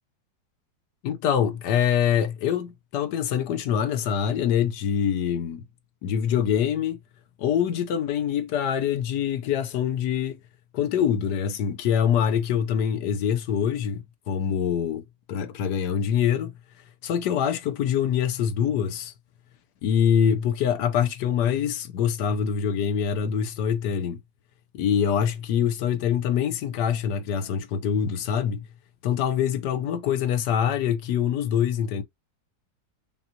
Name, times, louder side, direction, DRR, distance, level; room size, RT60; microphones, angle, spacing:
voice 1, 1.0-5.6 6.0-7.0 7.4-10.4 10.7-15.0 15.3-16.5 17.0-19.1 19.8-24.2 24.7-28.7 29.0-32.0, left 8 dB, 70° left, 1.1 m, -24 dB
5.5 x 2.3 x 2.6 m
omnidirectional pair, 2.0 m